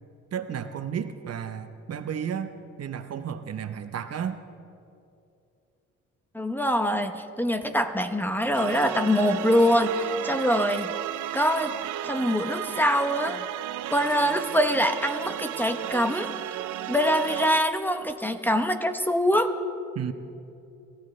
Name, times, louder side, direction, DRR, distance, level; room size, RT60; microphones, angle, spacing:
voice 1, 0.3-2.5 2.8-4.4 19.9-20.1, right 8 dB, 55° right, 9 dB, 1.0 m, -32 dB
voice 2, 6.3-10.9 11.3-11.8 12.0-13.4 13.9-16.3 16.9-19.5, equal, 5° left, 7 dB, 0.9 m, -24 dB
sound 1, 8.5-17.6, right 13 dB, 80° right, 0.6 m, -34 dB
27.5 x 14.5 x 3.3 m, 2.6 s
cardioid pair, 90°, 30 cm